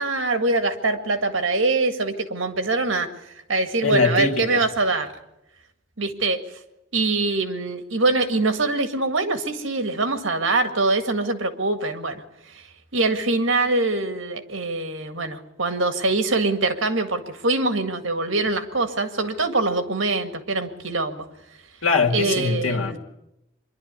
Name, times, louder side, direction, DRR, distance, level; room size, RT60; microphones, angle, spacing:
voice 1, 0.0-3.1 3.5-5.1 6.0-6.4 6.9-12.7 12.9-21.3 22.1-23.0, right 3 dB, 70° right, 7 dB, 1.9 m, -23 dB
voice 2, 3.8-4.6 21.8-23.0, left 4 dB, 85° left, 4 dB, 2.3 m, -22 dB
24.0 x 11.5 x 9.7 m, 0.88 s
head